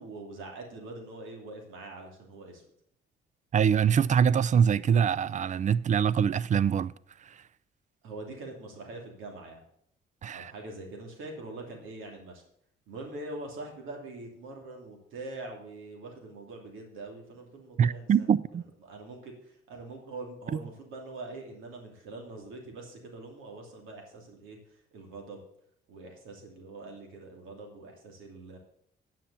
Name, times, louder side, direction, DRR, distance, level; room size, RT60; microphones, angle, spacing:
voice 1, 0.0-2.6 8.0-9.6 10.3-12.4 12.9-18.3 18.8-25.4 25.9-28.6, right 2 dB, 85° right, 2.8 m, -43 dB
voice 2, 3.5-6.9 10.2-10.5 17.8-18.6, right 7 dB, 40° right, 0.4 m, -24 dB
10.0 x 5.8 x 6.9 m
cardioid pair, 90°, 20 cm